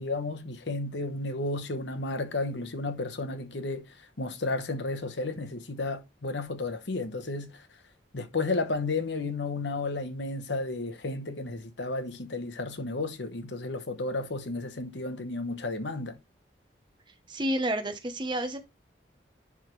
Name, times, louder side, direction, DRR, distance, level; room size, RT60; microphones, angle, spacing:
voice 1, 0.0-3.8 4.2-7.6 8.1-16.2, left 3 dB, 75° left, 1.0 m, -32 dB
voice 2, 17.3-18.6, right 1 dB, 25° right, 0.9 m, -30 dB
10.5 x 3.7 x 3.2 m
head